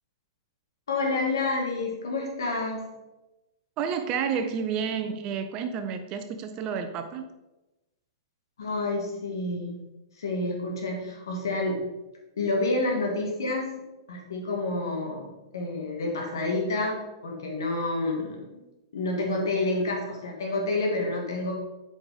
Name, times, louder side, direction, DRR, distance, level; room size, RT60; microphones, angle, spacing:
voice 1, 0.9-2.9 8.6-9.7 10.2-11.9 12.4-13.8 14.1-15.3 15.5-18.6 18.9-21.5, left 2 dB, 70° left, 0 dB, 2.2 m, -29 dB
voice 2, 3.8-7.2, right 7 dB, 35° right, 8 dB, 0.9 m, -30 dB
8.2 x 5.2 x 4.0 m, 1.0 s
figure-of-eight pair, 105°, 2 cm